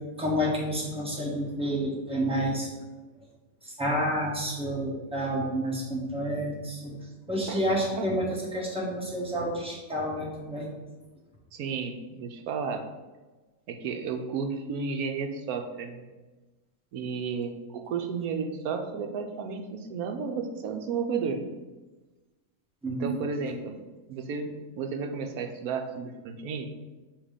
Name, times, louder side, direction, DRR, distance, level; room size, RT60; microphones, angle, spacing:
voice 1, 0.2-2.7 3.6-6.9 7.3-10.7 22.8-23.2, equal, 5° right, -4 dB, 1.2 m, -29 dB
voice 2, 11.5-12.9 13.7-16.0 16.9-21.4 22.9-23.8 24.1-26.7, right 5 dB, 90° right, 5 dB, 1.1 m, -33 dB
7.2 x 2.9 x 5.0 m, 1.2 s
omnidirectional pair, 1.5 m